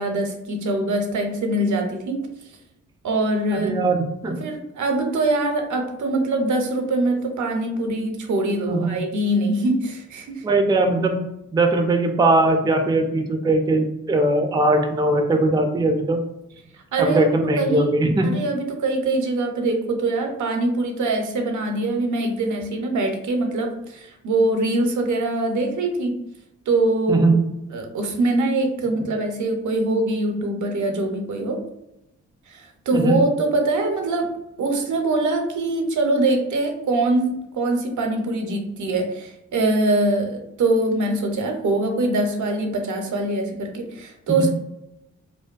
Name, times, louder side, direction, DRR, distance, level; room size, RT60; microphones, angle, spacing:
voice 1, 0.0-2.3 3.0-3.8 4.3-10.4 16.9-17.9 18.2-26.2 26.7-27.3 27.7-31.6 32.5-34.3 34.6-44.5, right 2 dB, 65° right, 4 dB, 0.5 m, -23 dB
voice 2, 3.5-4.4 8.7-9.0 10.4-11.2 11.5-16.2 17.0-18.3 27.1-27.4 32.9-33.2 44.4-44.5, right 2 dB, 15° right, 3 dB, 0.4 m, -20 dB
2.5 x 2.1 x 2.3 m, 0.87 s
supercardioid pair, 50°, 32 cm